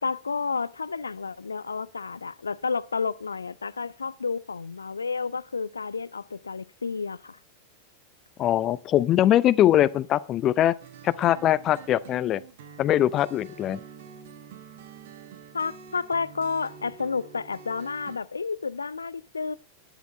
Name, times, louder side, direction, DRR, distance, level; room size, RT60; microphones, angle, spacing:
voice 1, 0.0-7.4 15.5-19.5, left 5 dB, 75° left, 0.5 m, -31 dB
voice 2, 8.4-10.7 11.0-12.4 12.8-13.8, left 12 dB, 30° left, 0.6 m, -22 dB
sound 1, 10.8-18.2, right 6 dB, 55° right, 1.4 m, -47 dB
11.5 x 10.5 x 4.3 m
figure-of-eight pair, 90°, 0 cm